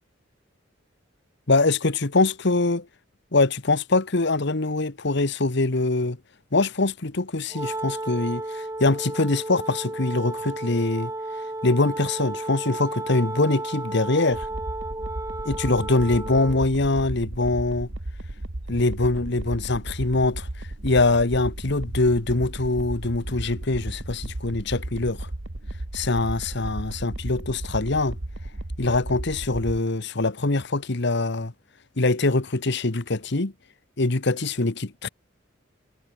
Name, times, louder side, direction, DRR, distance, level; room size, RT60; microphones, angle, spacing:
voice 1, 1.5-2.8 3.3-6.2 6.5-11.1 11.6-14.5 15.4-17.9 18.7-20.5 20.8-25.3 25.9-28.2 28.8-31.5 32.0-33.5 34.0-35.1, left 2 dB, 60° left, 1.4 m, -23 dB
Wind instrument woodwind instrument, 7.5-16.7, right 2 dB, 15° right, 3.0 m, -33 dB
sound 1, 14.3-29.8, right 1 dB, 70° right, 1.7 m, -35 dB
head